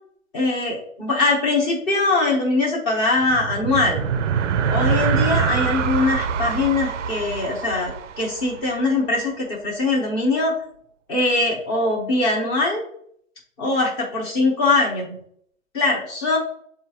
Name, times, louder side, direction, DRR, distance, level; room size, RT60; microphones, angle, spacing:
voice 1, 0.3-4.0 4.7-10.6 11.1-12.8 13.6-15.2 15.7-16.4, left 2 dB, 15° left, -2 dB, 0.7 m, -22 dB
sound 1, 3.2-8.9, right 7 dB, 65° right, 0.5 m, -24 dB
7.1 x 2.4 x 2.8 m, 0.66 s
hypercardioid pair, 145°, 40 cm